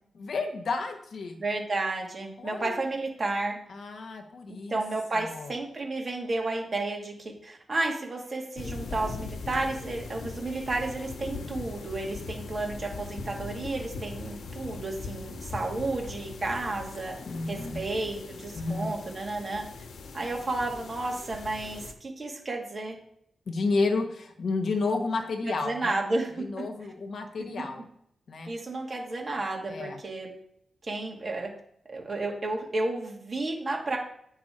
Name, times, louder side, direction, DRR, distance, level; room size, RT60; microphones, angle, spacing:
voice 1, 0.1-1.4 2.4-2.8 3.7-4.8 5.1-5.5 17.3-17.8 18.5-18.9 23.5-26.0 26.4-27.8 28.3-28.5 29.7-30.0, left 3 dB, 55° left, 4 dB, 1.2 m, -31 dB
voice 2, 1.4-3.6 4.7-17.1 17.5-19.6 20.1-23.0 25.4-26.7 27.6-27.7 28.5-30.3 30.8-31.5 31.9-34.0, right 2 dB, 35° right, 0 dB, 2.0 m, -32 dB
sound 1, 8.6-21.9, left 4 dB, 75° left, 1.0 m, -40 dB
9.4 x 5.7 x 4.4 m, 0.70 s
wide cardioid pair, 150°, 0 cm